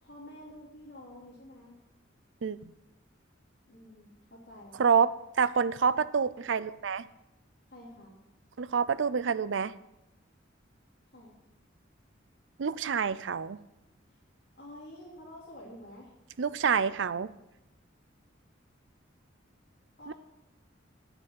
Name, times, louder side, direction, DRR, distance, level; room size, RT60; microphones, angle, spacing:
voice 1, 0.0-1.8 3.7-5.0 7.7-8.2 11.1-11.3 14.1-14.2 14.5-16.1 20.0-20.1, left 1 dB, 55° left, -6 dB, 2.9 m, -49 dB
voice 2, 2.4-2.7 4.8-7.1 8.6-9.7 12.6-13.6 16.4-17.3 20.1-20.2, right 6 dB, 70° right, 16 dB, 0.5 m, -27 dB
10.0 x 7.8 x 7.7 m, 0.94 s
head